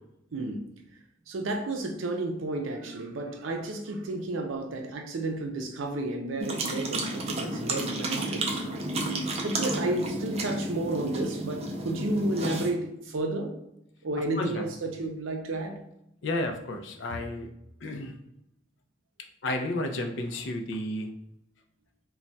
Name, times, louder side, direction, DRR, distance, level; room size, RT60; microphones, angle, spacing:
voice 1, 0.3-0.7 1.3-8.5 9.4-13.5 14.0-15.8, right 2 dB, 80° right, 4 dB, 0.5 m, -32 dB
sound 1, 6.4-12.7, right 2 dB, 30° right, 0.4 m, -32 dB
voice 2, 14.3-14.7 16.2-17.5 17.8-18.2 19.4-21.1, left 1 dB, 65° left, 4 dB, 0.4 m, -32 dB
2.3 x 2.2 x 3.9 m, 0.82 s
head